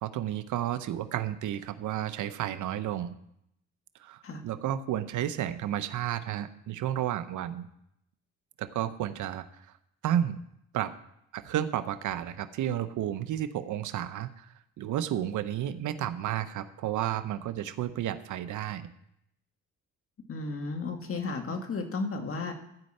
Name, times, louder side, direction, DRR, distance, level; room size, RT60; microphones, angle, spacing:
voice 1, 0.0-3.2 4.0-7.7 8.6-9.4 10.0-10.4 10.7-10.9 11.3-14.5 14.8-18.9, right 11 dB, 75° right, 12 dB, 0.8 m, -32 dB
voice 2, 20.3-22.5, left 3 dB, 45° left, 4 dB, 2.0 m, -33 dB
13.5 x 5.4 x 7.8 m, 0.76 s
cardioid pair, 90°, 30 cm